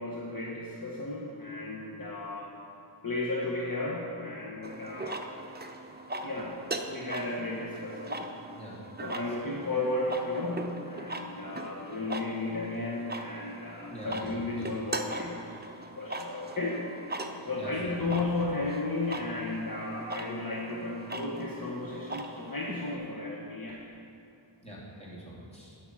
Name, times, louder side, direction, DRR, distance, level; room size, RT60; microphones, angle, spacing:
voice 1, 0.0-2.5 3.0-5.3 6.2-8.3 9.0-15.6 15.9-16.8 17.4-23.8, left 2 dB, 45° left, -3 dB, 1.2 m, -34 dB
sound 1, 4.6-23.0, right 2 dB, 20° right, 0.6 m, -40 dB
voice 2, 13.9-14.7 17.5-18.0 24.6-25.8, equal, 15° left, -6 dB, 2.7 m, -44 dB
11.5 x 6.0 x 6.1 m, 2.5 s
wide cardioid pair, 60°, 47 cm